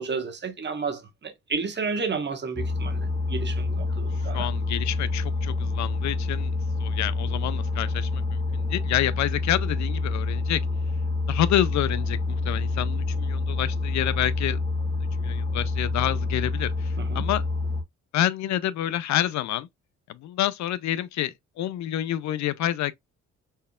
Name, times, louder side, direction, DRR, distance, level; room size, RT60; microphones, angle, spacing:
voice 1, 0.0-4.5 17.0-17.3, right 5 dB, 35° right, 1.3 m, -32 dB
sound 1, 2.5-17.8, left 3 dB, 25° left, 1.3 m, -27 dB
voice 2, 4.3-10.6 11.3-14.6 15.2-17.4 18.1-19.7 20.1-22.9, left 12 dB, 65° left, 0.5 m, -28 dB
4.4 x 3.4 x 2.3 m
cardioid pair, 90°, 30 cm